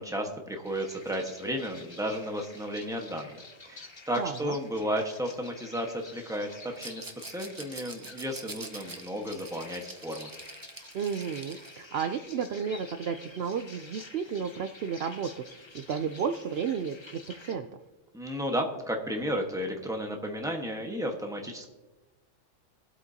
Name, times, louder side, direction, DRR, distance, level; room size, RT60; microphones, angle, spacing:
voice 1, 0.0-10.3 18.1-21.7, equal, 5° right, 2 dB, 1.2 m, -33 dB
sound 1, 0.6-17.5, left 3 dB, 25° left, 0.8 m, -50 dB
voice 2, 4.2-4.5 10.9-17.7, right 7 dB, 65° right, 8 dB, 0.7 m, -33 dB
Rattle, 6.8-11.9, right 3 dB, 25° right, 0.5 m, -45 dB
22.5 x 8.3 x 2.8 m, 1.1 s
omnidirectional pair, 1.3 m